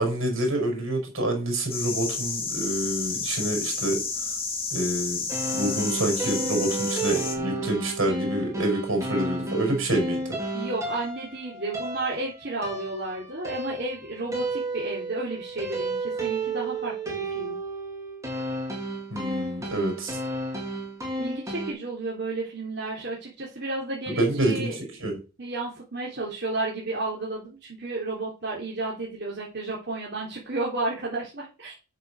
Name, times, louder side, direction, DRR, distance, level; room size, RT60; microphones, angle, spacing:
voice 1, 0.0-4.0 4.7-5.2 5.5-10.4 19.1-20.2 24.1-24.7 25.0-25.2, right 1 dB, 75° right, 6.0 m, -27 dB
sound 1, 1.7-7.3, left 4 dB, 25° left, 2.4 m, -31 dB
sound 2, 5.3-21.7, right 2 dB, 15° right, 2.8 m, -32 dB
voice 2, 10.5-17.6 21.2-24.8 25.4-31.7, right 2 dB, 50° right, 3.3 m, -32 dB
8.8 x 6.7 x 6.5 m
head